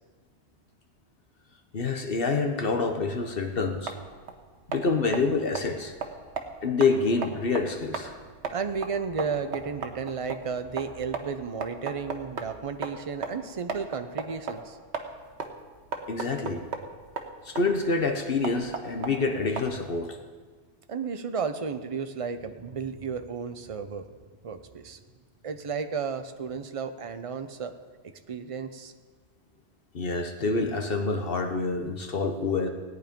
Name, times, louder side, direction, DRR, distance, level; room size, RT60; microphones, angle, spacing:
voice 1, 1.7-3.9 4.7-5.9 6.6-8.1 16.1-16.6 17.4-20.2 29.9-32.7, left 4 dB, 55° left, 5 dB, 1.1 m, -27 dB
sound 1, 3.4-20.0, right 5 dB, 75° right, 1.4 m, -38 dB
voice 2, 8.5-14.8 20.9-24.1 24.4-25.0 25.4-27.7 28.3-28.9, right 5 dB, 35° right, 9 dB, 0.7 m, -33 dB
17.5 x 9.6 x 5.2 m, 1.4 s
omnidirectional pair, 1.2 m